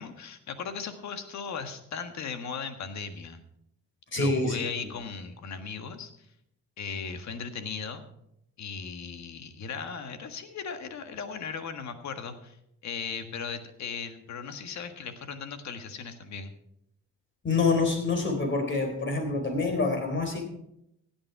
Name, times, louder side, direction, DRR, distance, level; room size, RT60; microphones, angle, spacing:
voice 1, 0.0-3.4 4.2-6.3 6.8-8.1 8.6-12.6 12.8-16.5, left 6 dB, 65° left, 8 dB, 1.6 m, -37 dB
voice 2, 4.1-4.6 17.4-20.4, left 3 dB, 40° left, 4 dB, 3.8 m, -26 dB
16.0 x 8.9 x 4.7 m, 0.79 s
cardioid pair, 90°, 30 cm